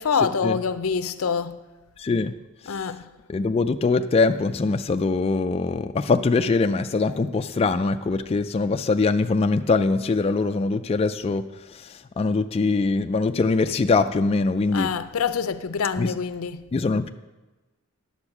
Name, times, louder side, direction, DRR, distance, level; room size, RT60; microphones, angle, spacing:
voice 1, 0.0-1.6 2.7-3.1 14.7-16.7, left 6 dB, 85° left, 0.5 m, -26 dB
voice 2, 2.0-2.3 3.3-11.4 11.7-14.9 16.0-16.1 16.7-17.1, left 3 dB, 30° left, 0.3 m, -22 dB
9.8 x 7.1 x 5.9 m
head